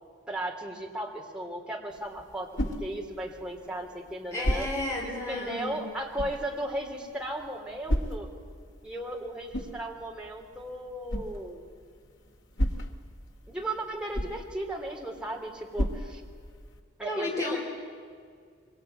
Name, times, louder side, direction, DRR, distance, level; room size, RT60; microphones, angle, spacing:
voice 1, 0.3-2.5 2.8-4.7 5.0-8.3 8.8-11.6 13.5-16.2 17.0-17.6, right 1 dB, 5° right, -1 dB, 3.3 m, -36 dB
sound 1, 1.9-16.8, equal, 80° left, 2.3 m, -36 dB
voice 2, 4.3-5.8 17.0-17.6, left 2 dB, 15° left, -3 dB, 4.0 m, -32 dB
24.5 x 23.5 x 9.3 m, 2.1 s
head